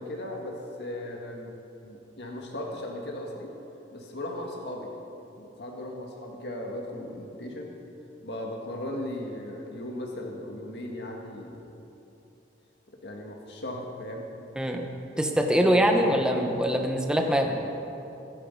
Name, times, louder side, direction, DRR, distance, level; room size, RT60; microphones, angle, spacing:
voice 1, 0.0-1.5 1.8-3.5 3.9-4.9 5.4-7.7 8.2-11.7 13.0-14.4 15.1-16.2, left 1 dB, 65° left, 0 dB, 1.8 m, -37 dB
voice 2, 14.6-14.9 15.2-17.7, equal, 5° right, 2 dB, 1.2 m, -23 dB
23.5 x 10.0 x 5.3 m, 2.9 s
head